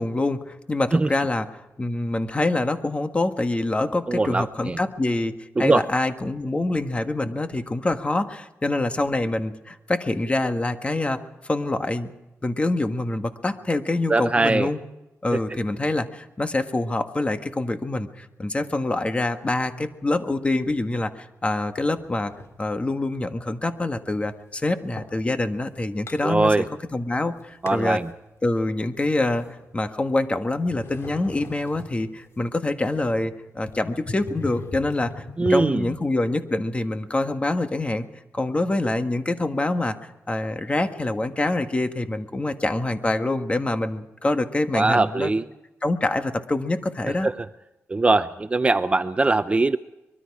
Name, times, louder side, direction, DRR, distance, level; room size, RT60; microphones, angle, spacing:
voice 1, 0.0-12.1 12.4-14.8 15.2-22.3 22.6-26.6 26.9-28.0 28.4-29.5 29.7-35.2 35.5-38.0 38.3-40.0 40.3-45.3 45.8-47.3, left 2 dB, 25° left, 7 dB, 1.7 m, -25 dB
voice 2, 4.1-4.8 5.6-5.9 14.1-14.7 15.3-15.4 26.2-26.7 27.6-28.1 35.4-35.8 44.7-45.4 47.2-47.3 47.9-49.8, right 3 dB, 25° right, 12 dB, 0.6 m, -21 dB
sound 1, 21.8-22.7 23.2-25.2 25.7-26.9 27.2-28.0 28.5-30.2 30.6-35.6, left 3 dB, 60° left, 2.9 m, -40 dB
24.5 x 22.5 x 4.9 m, 0.99 s
cardioid pair, 100°, 5 cm